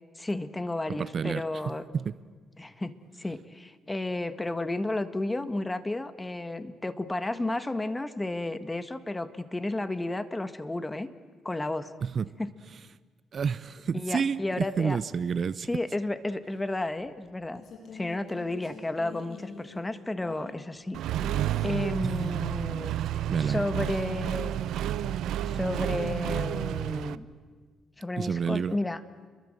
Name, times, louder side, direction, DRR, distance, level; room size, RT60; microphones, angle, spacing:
voice 1, 0.2-1.9 2.6-11.1 11.4-11.9 12.4-12.5 13.9-15.0 15.7-17.6 17.9-21.0 21.6-22.9 23.5-24.6 25.4-27.3 28.0-29.0, left 2 dB, 15° left, 12 dB, 1.6 m, -32 dB
voice 2, 0.9-2.2 12.0-12.3 13.3-15.7 22.0-22.2 23.3-23.7 28.2-28.8, right 6 dB, 50° right, 17 dB, 0.7 m, -30 dB
sound 1, 16.9-20.8 21.2-21.9 23.2-23.3, left 4 dB, 60° left, 7.3 m, -46 dB
Accelerating revving vroom, 20.9-27.2, right 11 dB, 80° right, 0.7 m, -30 dB
30.0 x 22.0 x 7.9 m, 1.5 s
cardioid pair, 90°, 0 cm